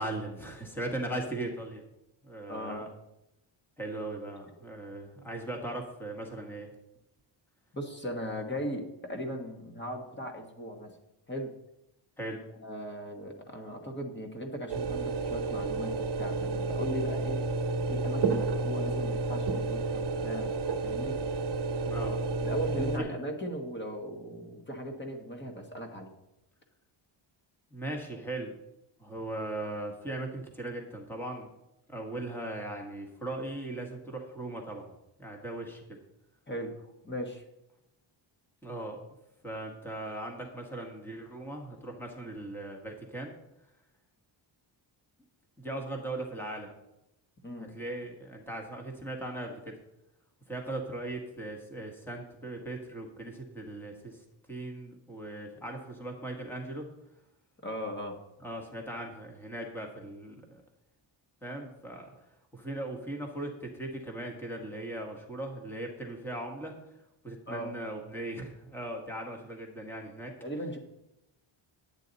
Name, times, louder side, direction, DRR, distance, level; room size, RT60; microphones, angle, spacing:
voice 1, 0.0-1.8 2.2-2.9 3.8-6.7 12.2-12.4 21.8-22.2 22.9-23.2 27.7-28.6 29.0-31.5 31.9-34.9 35.2-36.0 38.6-39.0 39.4-43.3 45.6-46.7 47.6-49.8 50.5-56.9 58.4-60.6 61.4-62.1 62.5-66.7 67.2-70.3, right 1 dB, 5° left, 1 dB, 1.5 m, -38 dB
voice 2, 2.5-2.8 7.7-11.0 11.3-11.5 12.5-17.4 17.9-20.5 20.8-21.2 22.4-26.1 36.5-37.4 47.4-47.7 57.6-58.2 67.5-67.7 70.4-70.8, equal, 20° left, 3 dB, 1.4 m, -38 dB
sound 1, 14.7-23.0, right 3 dB, 55° right, 1.2 m, -31 dB
10.5 x 9.1 x 4.1 m, 0.89 s
wide cardioid pair, 160°, 48 cm